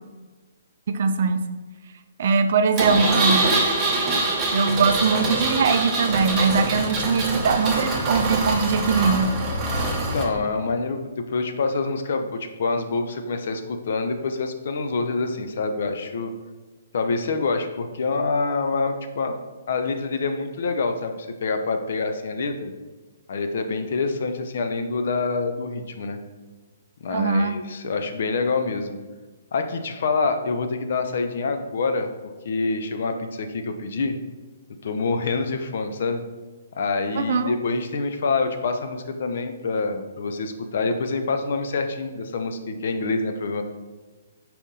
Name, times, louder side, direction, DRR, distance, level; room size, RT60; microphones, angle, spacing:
voice 1, 0.9-1.4 2.2-3.5 4.5-9.3 27.1-27.6 37.1-37.5, right 5 dB, 55° right, 9 dB, 0.3 m, -21 dB
Engine, 2.8-10.2, right 2 dB, 25° right, 0.8 m, -24 dB
voice 2, 10.1-16.3 16.9-19.4 19.7-22.7 23.3-26.2 27.0-29.0 29.5-32.1 32.5-34.2 34.8-36.2 36.7-43.6, left 4 dB, 55° left, 7 dB, 0.4 m, -26 dB
4.2 x 2.6 x 3.7 m, 1.3 s
figure-of-eight pair, 130°, 0 cm